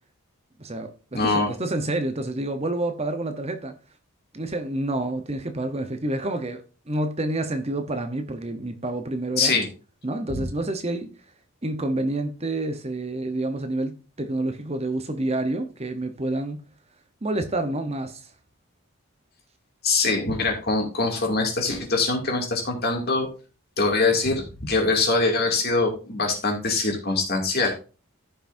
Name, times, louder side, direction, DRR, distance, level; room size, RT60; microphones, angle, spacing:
voice 1, 0.6-3.7 4.3-9.6 10.0-11.1 11.6-16.6 17.2-18.3, right 2 dB, 30° right, 0.9 m, -28 dB
voice 2, 1.1-1.5 9.4-9.7 19.8-23.3 23.8-27.7, left 3 dB, 45° left, 2.5 m, -23 dB
14.5 x 5.9 x 2.7 m
head